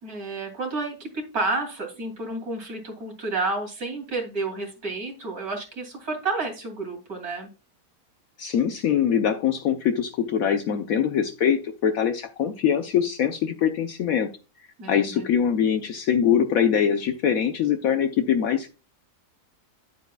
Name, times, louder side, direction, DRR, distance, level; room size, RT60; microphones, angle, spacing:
voice 1, 0.0-7.5 14.8-15.3, right 3 dB, 70° right, 1 dB, 3.3 m, -30 dB
voice 2, 8.4-14.3 14.9-18.7, left 8 dB, 70° left, 6 dB, 1.1 m, -23 dB
10.5 x 8.2 x 2.3 m, 0.32 s
omnidirectional pair, 1.7 m